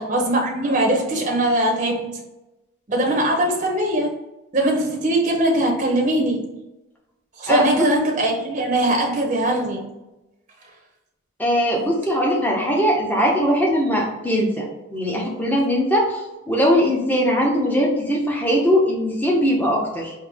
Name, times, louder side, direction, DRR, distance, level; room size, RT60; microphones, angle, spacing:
voice 1, 0.0-2.2 2.9-4.1 4.5-6.6 7.4-10.0, right 1 dB, 35° right, 0 dB, 0.8 m, -21 dB
voice 2, 11.4-20.1, equal, 10° left, -2 dB, 1.0 m, -20 dB
4.6 x 2.8 x 3.5 m, 0.97 s
head